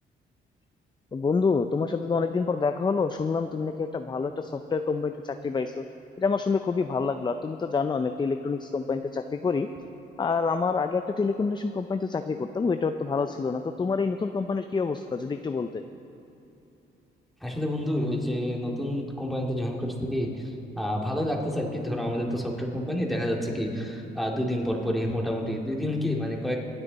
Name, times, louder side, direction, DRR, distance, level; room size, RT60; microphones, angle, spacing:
voice 1, 1.1-5.8 6.2-9.7 10.2-15.8, left 4 dB, 20° left, 8 dB, 0.5 m, -27 dB
voice 2, 17.4-20.3 20.8-26.6, left 1 dB, ahead, -1 dB, 2.4 m, -29 dB
26.0 x 9.0 x 4.1 m, 2.9 s
cardioid pair, 90°, 20 cm